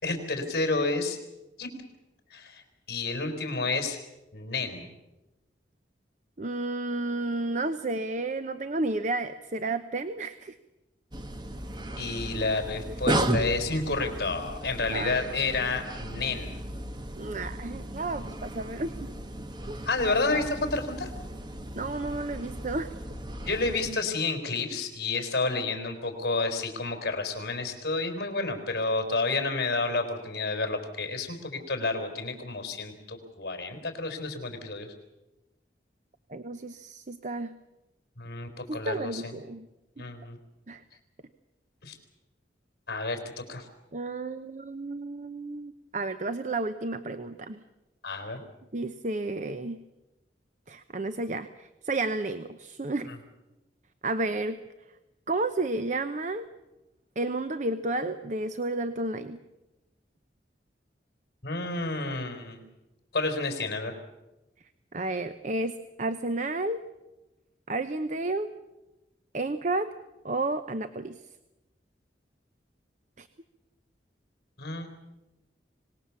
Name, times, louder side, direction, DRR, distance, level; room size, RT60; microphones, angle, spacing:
voice 1, 0.0-1.2 1.6-1.7 2.3-2.6 2.9-4.0 4.3-4.9 12.0-16.6 19.8-21.1 23.4-34.9 38.2-39.3 40.0-40.4 41.8-42.0 42.9-43.2 43.5-43.7 48.0-48.4 53.1-53.2 61.4-62.6 63.1-63.9 74.6-74.9, left 3 dB, 55° left, 5 dB, 4.4 m, -30 dB
voice 2, 6.4-10.6 14.9-15.4 17.2-19.1 19.7-19.8 21.8-22.9 36.3-37.6 38.7-39.7 40.0-40.1 40.7-40.8 43.9-47.6 48.7-49.8 50.7-53.1 54.0-54.6 55.3-56.5 57.2-59.4 64.9-66.8 67.7-68.5 69.3-69.9 70.2-71.2 73.2-73.3, right 2 dB, 40° right, 10 dB, 0.8 m, -32 dB
sound 1, 11.1-23.9, right 1 dB, 25° right, 1.2 m, -35 dB
25.5 x 19.5 x 7.2 m, 1.0 s
head